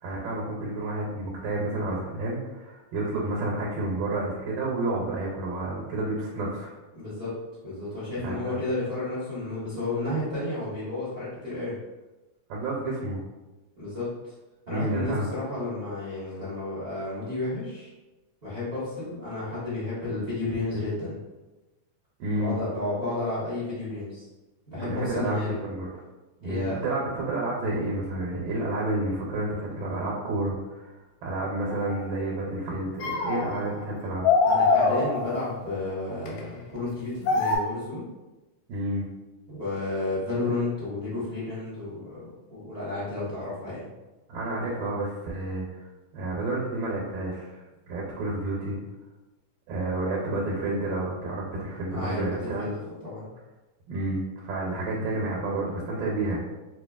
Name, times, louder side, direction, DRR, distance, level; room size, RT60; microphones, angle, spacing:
voice 1, 0.0-6.7 8.2-8.6 12.5-13.2 14.7-15.3 22.2-22.6 24.7-26.0 26.4-34.3 38.7-39.1 44.3-45.9 46.1-47.6 47.9-48.8 49.7-52.7 53.9-56.4, right 2 dB, 85° right, -4 dB, 2.4 m, -30 dB
voice 2, 6.9-7.3 7.6-11.7 13.8-14.3 14.7-17.9 18.4-21.2 22.3-24.3 24.7-25.6 26.4-26.8 34.4-38.0 39.5-43.9 51.9-53.3, left 2 dB, 65° right, -11 dB, 0.6 m, -32 dB
sound 1, 31.7-32.0 33.0-33.8 34.2-35.6 36.3-36.4 37.3-37.6, left 4 dB, 90° left, 2.3 m, -23 dB
6.5 x 2.2 x 2.4 m, 1.1 s
omnidirectional pair, 3.8 m